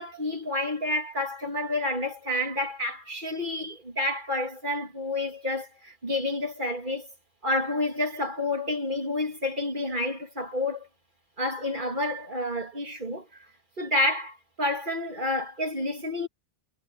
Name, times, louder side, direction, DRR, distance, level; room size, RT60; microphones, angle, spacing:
voice 1, 0.0-7.1 7.4-10.9 11.4-13.3 13.8-16.3, left 1 dB, 50° right, 3.2 m, -29 dB
omnidirectional pair, 1.0 m